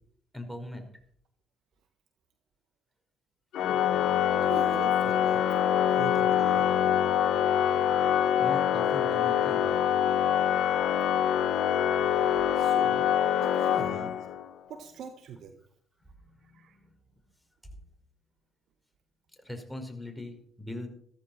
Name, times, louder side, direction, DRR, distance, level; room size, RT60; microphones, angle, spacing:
voice 1, 0.3-0.9 8.4-9.7 16.3-16.9 19.4-20.9, left 1 dB, ahead, 4 dB, 5.2 m, -40 dB
Organ, 3.5-14.5, left 9 dB, 70° left, 0.9 m, -25 dB
voice 2, 4.3-5.6 5.9-6.7 12.5-14.2 14.7-15.6 16.4-16.8, right 7 dB, 65° right, 8 dB, 1.5 m, -43 dB
15.5 x 14.0 x 4.5 m, 0.62 s
hypercardioid pair, 50°, 0 cm